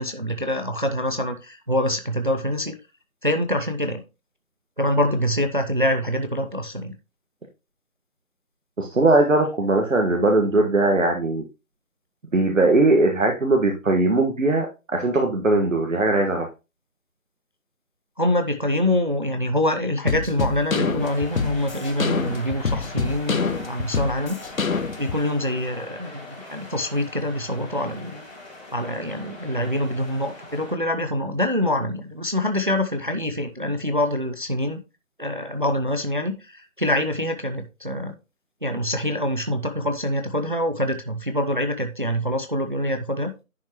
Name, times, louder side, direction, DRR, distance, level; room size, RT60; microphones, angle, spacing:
voice 1, 0.0-2.8 3.2-4.0 4.8-6.9 18.2-24.4 25.0-26.2 26.5-28.2 28.7-34.8 35.2-38.1 38.6-43.3, left 1 dB, 35° right, 7 dB, 0.7 m, -25 dB
voice 2, 8.8-11.4 12.3-16.5, right 2 dB, 65° right, 2 dB, 1.7 m, -20 dB
sound 1, 20.1-25.2, left 5 dB, 75° left, 0.9 m, -26 dB
sound 2, 21.0-30.7, left 2 dB, 10° left, 2.4 m, -41 dB
10.5 x 5.9 x 3.0 m, 0.28 s
figure-of-eight pair, 170°, 42 cm